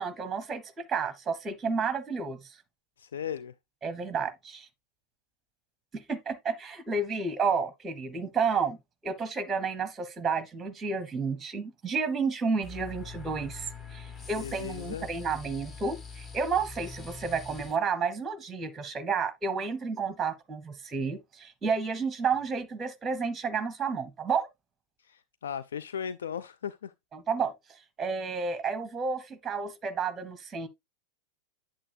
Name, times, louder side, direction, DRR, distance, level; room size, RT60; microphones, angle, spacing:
voice 1, 0.0-2.5 3.8-4.7 5.9-8.8 9.0-24.5 27.1-30.7, right 5 dB, 15° right, 0.9 m, -31 dB
voice 2, 3.0-3.5 14.3-15.1 25.0-26.9, left 8 dB, 65° left, 0.3 m, -37 dB
sound 1, 12.6-17.8, left 4 dB, 20° left, 1.2 m, -43 dB
8.6 x 7.3 x 2.2 m
figure-of-eight pair, 90°, 0 cm